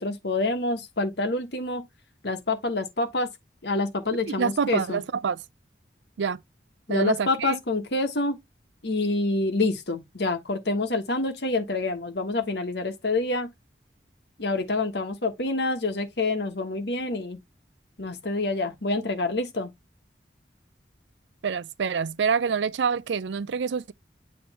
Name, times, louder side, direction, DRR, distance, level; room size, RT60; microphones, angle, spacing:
voice 1, 0.0-1.9 2.2-3.3 3.6-5.0 6.9-8.4 8.8-13.5 14.4-17.4 18.0-19.7, left 2 dB, 70° left, 1.4 m, -27 dB
voice 2, 4.2-5.4 6.2-6.4 6.9-7.6 21.4-23.9, right 6 dB, 85° right, 0.4 m, -26 dB
7.8 x 3.1 x 4.2 m
head